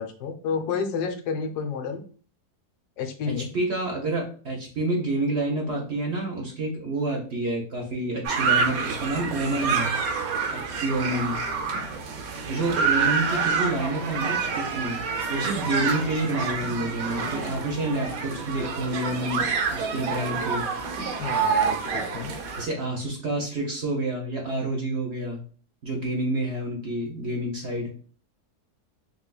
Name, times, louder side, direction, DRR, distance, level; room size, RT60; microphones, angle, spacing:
voice 1, 0.0-2.0 3.0-3.5 21.2-22.3, left 5 dB, 85° left, 6 dB, 1.2 m, -30 dB
voice 2, 3.5-9.9 10.5-11.4 12.5-15.0 15.3-20.6 22.6-25.4 25.8-27.9, right 2 dB, 55° right, 0 dB, 0.8 m, -28 dB
sound 1, 8.2-22.6, right 5 dB, 70° right, 1.0 m, -27 dB
3.3 x 3.0 x 2.3 m, 0.41 s
omnidirectional pair, 1.7 m